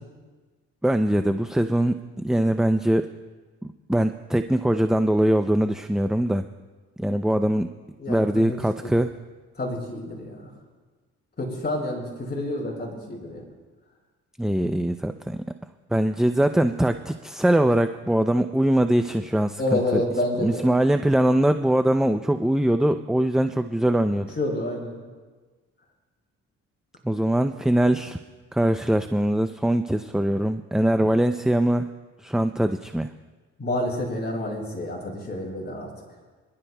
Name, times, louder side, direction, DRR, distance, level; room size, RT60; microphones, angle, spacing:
voice 1, 0.8-3.1 3.6-6.4 7.0-7.7 8.1-9.1 14.4-15.4 15.9-20.0 20.4-24.3 27.0-28.2 28.5-31.9 32.2-33.1, right 1 dB, ahead, 8 dB, 0.4 m, -22 dB
voice 2, 8.0-8.9 9.6-10.5 11.4-13.4 19.6-20.6 24.4-25.0 33.6-35.9, left 1 dB, 35° left, -2 dB, 4.7 m, -29 dB
26.5 x 12.0 x 2.3 m, 1.3 s
cardioid pair, 90°, 30 cm